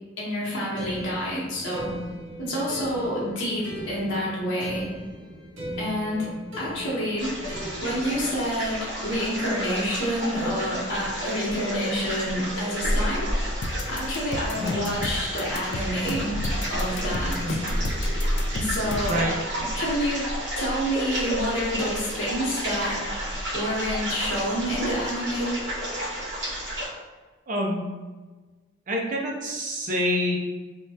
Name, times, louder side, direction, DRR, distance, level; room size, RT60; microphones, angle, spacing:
voice 1, 0.2-1.9 2.4-4.9 5.8-6.3 6.6-7.3 7.8-13.3 13.9-16.4 16.7-17.6 18.5-19.2 19.8-20.3 20.5-23.0 23.5-25.5, equal, 80° left, -6 dB, 0.9 m, -28 dB
sound 1, 0.8-8.4, equal, 90° right, 0.6 m, -38 dB
sound 2, 7.2-26.9, equal, 65° right, 1.3 m, -31 dB
sound 3, 13.6-19.3, left 2 dB, 65° left, 0.3 m, -32 dB
voice 2, 19.1-19.4 27.5-27.8 28.9-30.4, equal, 45° right, 0 dB, 0.5 m, -27 dB
3.4 x 2.1 x 2.7 m, 1.3 s
head